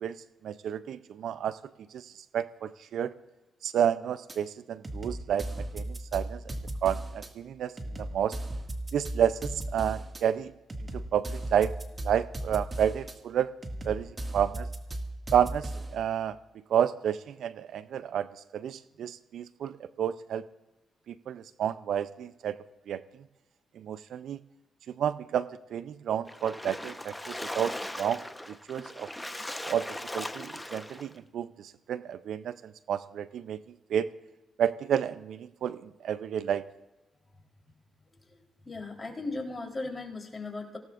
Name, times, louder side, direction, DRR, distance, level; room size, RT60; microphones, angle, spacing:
voice 1, 0.4-1.6 1.9-2.1 2.3-3.1 3.6-6.4 6.8-7.7 8.0-8.4 8.9-10.5 10.9-11.7 12.0-13.5 13.8-14.7 15.3-16.4 16.7-18.3 18.5-20.4 21.1-22.6 22.9-23.0 23.8-24.4 25.0-28.2 28.5-29.1 29.6-29.9 30.1-33.6 33.9-34.1 34.6-36.6, right 9 dB, 75° right, 15 dB, 0.5 m, -30 dB
sound 1, 4.3-4.4 4.8-7.3 7.8-10.2 10.7-13.2 13.6-16.0, right 1 dB, 30° right, 2.0 m, -37 dB
Splash splatter, 26.3-31.1, left 1 dB, 10° left, 1.0 m, -39 dB
voice 2, 38.3-40.8, left 3 dB, 25° left, 0 dB, 3.7 m, -37 dB
25.0 x 17.5 x 2.5 m, 1.1 s
supercardioid pair, 55°, 0 cm